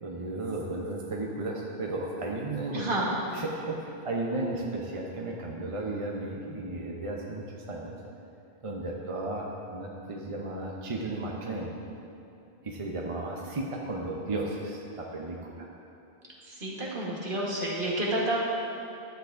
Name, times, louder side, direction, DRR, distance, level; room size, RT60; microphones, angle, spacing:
voice 1, 0.0-2.9 3.3-8.0 8.6-11.7 12.6-15.7, right 2 dB, 35° right, -1 dB, 0.7 m, -34 dB
voice 2, 2.7-3.2 16.4-18.4, right 1 dB, 55° right, -4 dB, 1.5 m, -30 dB
11.5 x 8.0 x 2.5 m, 2.8 s
omnidirectional pair, 1.1 m